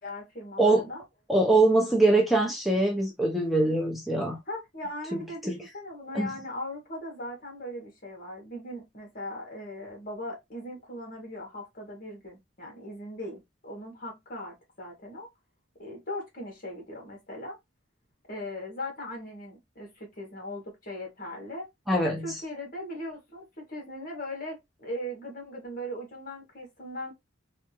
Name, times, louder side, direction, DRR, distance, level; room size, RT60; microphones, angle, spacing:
voice 1, 0.0-1.0 4.5-15.3 15.8-17.6 18.3-21.7 22.2-27.1, left 1 dB, 50° left, 1.8 m, -39 dB
voice 2, 0.6-0.9 1.3-4.4 5.1-5.2 5.5-5.6 6.1-6.3 21.9-22.4, right 2 dB, ahead, 0.6 m, -23 dB
3.4 x 2.8 x 2.9 m
head